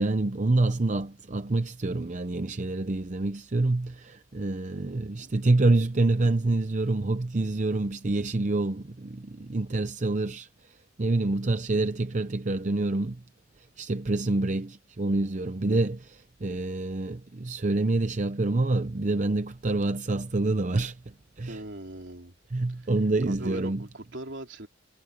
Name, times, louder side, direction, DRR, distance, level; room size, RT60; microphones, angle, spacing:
voice 1, 0.0-13.2 13.6-21.6 22.5-23.9, right 2 dB, 40° right, 0.7 m, -27 dB
voice 2, 4.8-5.3 15.7-15.9 21.5-22.4 22.8-22.9 23.3-24.7, right 1 dB, 65° right, 3.7 m, -41 dB
head